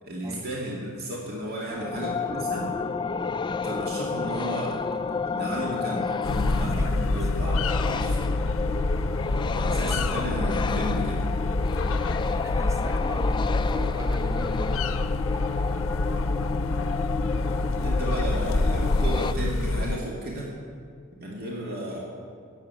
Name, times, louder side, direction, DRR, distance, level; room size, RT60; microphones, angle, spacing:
voice 1, 0.0-2.8 3.6-4.8 5.3-8.2 9.5-11.2 17.8-20.5 21.2-22.0, right 1 dB, 50° right, -4 dB, 2.3 m, -33 dB
sound 1, 1.7-19.3, left 5 dB, 20° left, 0.3 m, -31 dB
sound 2, 6.2-20.0, left 2 dB, 70° left, 0.6 m, -26 dB
voice 2, 6.5-7.3 12.2-14.9, right 1 dB, 15° right, 4 dB, 0.9 m, -39 dB
16.0 x 7.7 x 9.1 m, 2.4 s
head